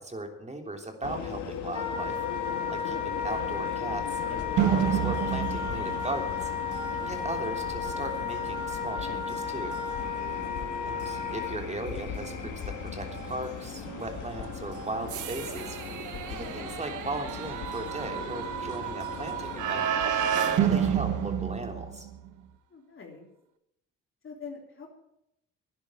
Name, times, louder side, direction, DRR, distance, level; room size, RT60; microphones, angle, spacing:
voice 1, 0.0-2.2 2.7-6.5 7.0-9.8 10.8-15.8 16.3-19.9 20.3-22.1, right 2 dB, 20° right, 4 dB, 3.2 m, -37 dB
sound 1, 1.0-20.9, left 7 dB, 80° left, 1.9 m, -39 dB
Wind instrument woodwind instrument, 1.7-11.6, left 7 dB, 20° left, 5.0 m, -33 dB
sound 2, 4.6-22.3, right 10 dB, 85° right, 1.3 m, -32 dB
voice 2, 22.7-23.3 24.2-24.9, left 5 dB, 45° left, 0 dB, 3.4 m, -45 dB
11.5 x 10.5 x 8.9 m, 0.81 s
cardioid pair, 90°, 30 cm